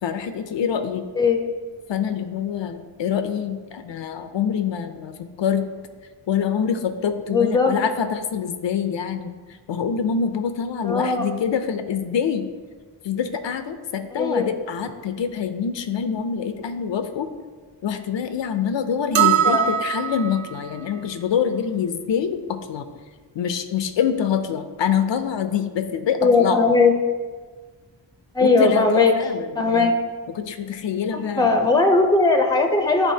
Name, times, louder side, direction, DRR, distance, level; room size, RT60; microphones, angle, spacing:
voice 1, 0.0-1.1 1.9-5.7 6.3-9.3 9.7-12.5 13.0-17.3 17.8-22.9 23.3-26.8 28.4-29.9 30.3-31.6, left 7 dB, 75° left, 9 dB, 0.5 m, -25 dB
voice 2, 7.3-7.8 10.8-11.3 14.1-14.5 19.2-19.7 26.2-26.9 28.3-29.1 29.5-30.0 31.4-33.1, left 3 dB, 10° left, 4 dB, 0.6 m, -18 dB
sound 1, 19.1-20.5, right 10 dB, 90° right, 0.6 m, -21 dB
10.0 x 3.4 x 2.7 m, 1.4 s
wide cardioid pair, 110°, 45 cm